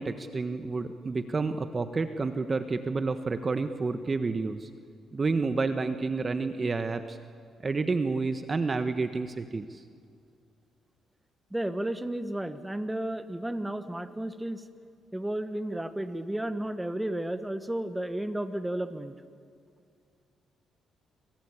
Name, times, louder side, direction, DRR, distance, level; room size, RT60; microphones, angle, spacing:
voice 1, 0.0-4.7 5.1-7.2 7.6-9.8, right 3 dB, 30° right, 9 dB, 1.4 m, -29 dB
voice 2, 11.5-14.7 15.1-19.2, right 1 dB, 10° right, 9 dB, 1.7 m, -33 dB
27.5 x 25.5 x 8.5 m, 2.3 s
cardioid pair, 90°, 0 cm